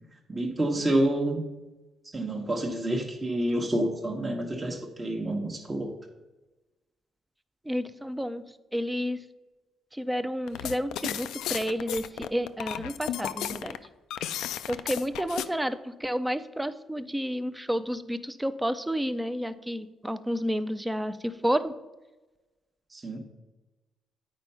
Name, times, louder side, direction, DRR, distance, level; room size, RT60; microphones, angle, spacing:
voice 1, 0.3-1.4 2.1-5.9 22.9-23.2, right 1 dB, 25° right, 0 dB, 1.0 m, -28 dB
voice 2, 7.7-8.4 8.7-9.2 10.0-13.8 14.7-21.7, equal, 10° right, 12 dB, 0.5 m, -30 dB
sound 1, 10.5-15.5, left 11 dB, 85° left, 0.4 m, -34 dB
9.2 x 4.4 x 5.5 m, 1.1 s
cardioid pair, 90°, 0 cm